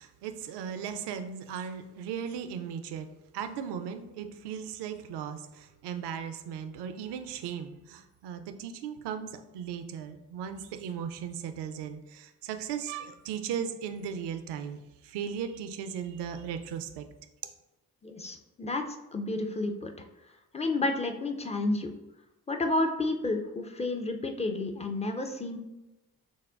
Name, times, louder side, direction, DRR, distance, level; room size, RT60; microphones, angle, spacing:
voice 1, 0.0-3.1 3.3-17.1, right 8 dB, 60° right, 8 dB, 0.5 m, -37 dB
voice 2, 18.0-18.8 19.1-19.9 20.5-21.9 22.5-25.6, left 2 dB, 15° left, 5 dB, 0.4 m, -30 dB
6.1 x 2.1 x 2.4 m, 0.97 s
hypercardioid pair, 45°, 45 cm